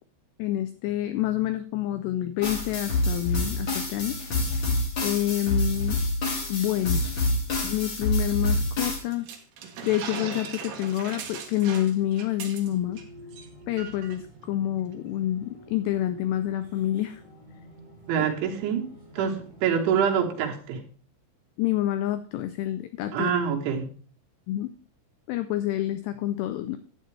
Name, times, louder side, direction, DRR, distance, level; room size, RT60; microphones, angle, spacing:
voice 1, 0.4-4.2 5.0-6.0 6.5-7.0 7.6-9.3 9.8-13.0 13.7-17.2 21.6-23.3 24.5-24.7 25.3-26.8, left 13 dB, 85° left, 10 dB, 2.4 m, -28 dB
sound 1, 2.4-9.0, left 2 dB, 55° left, 1.3 m, -27 dB
sound 2, 8.8-13.0 13.3-13.5 13.8-14.2, right 6 dB, 65° right, 2.6 m, -39 dB
aviao decolagem, 12.7-20.3, right 1 dB, 10° right, 4.6 m, -49 dB
voice 2, 18.1-18.9 19.2-20.8 23.1-23.9, right 7 dB, 80° right, 1 dB, 3.7 m, -25 dB
12.0 x 8.7 x 3.2 m, 0.43 s
omnidirectional pair, 5.5 m